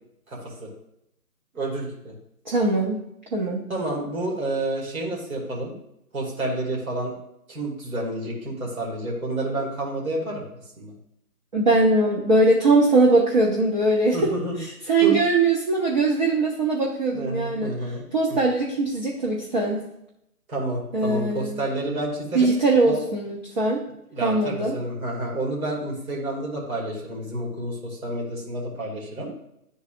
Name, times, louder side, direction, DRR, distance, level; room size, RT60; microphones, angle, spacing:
voice 1, 0.3-0.7 1.5-2.1 3.7-5.8 6.1-7.1 7.5-10.5 10.8-10.9 14.1-14.6 15.0-15.2 17.1-18.0 18.3-18.4 20.5-22.5 22.8-23.0 24.1-29.3, right 2 dB, 65° right, -3 dB, 2.3 m, -29 dB
voice 2, 2.5-3.0 3.3-3.6 11.5-14.3 14.6-17.8 18.1-19.8 20.9-21.6 22.3-23.8 24.2-24.8, right 2 dB, 30° right, -2 dB, 0.6 m, -21 dB
10.5 x 4.0 x 2.5 m, 0.80 s
figure-of-eight pair, 145°, 46 cm